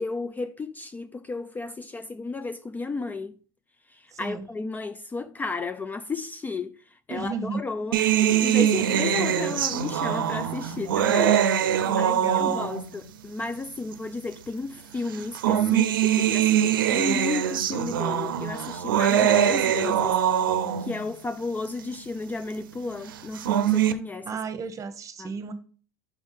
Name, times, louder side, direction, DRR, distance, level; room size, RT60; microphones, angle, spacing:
voice 1, 0.0-3.3 3.9-6.8 7.1-20.2 20.8-24.3 25.2-25.4, left 3 dB, 15° left, 0.4 m, -33 dB
voice 2, 4.1-4.4 7.1-7.6 11.9-12.5 24.2-25.5, right 5 dB, 30° right, 1.0 m, -33 dB
sound 1, 7.9-13.0 13.9-14.0 15.1-21.0 23.2-23.9, right 10 dB, 85° right, 0.6 m, -23 dB
6.0 x 3.5 x 5.7 m
hypercardioid pair, 105°, 11 cm